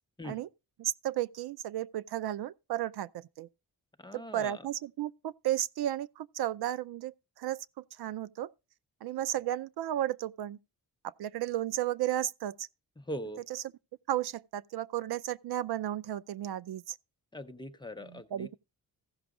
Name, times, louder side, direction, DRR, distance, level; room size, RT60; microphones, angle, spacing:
voice 1, 0.8-3.5 4.1-8.5 9.0-10.6 11.0-12.7 13.5-13.6 14.1-17.0 18.0-18.5, right 12 dB, 85° right, 0.5 m, -34 dB
voice 2, 4.0-4.6 13.0-13.4 17.3-18.5, equal, 10° left, 0.6 m, -41 dB
15.0 x 6.1 x 3.6 m
wide cardioid pair, 150°, 38 cm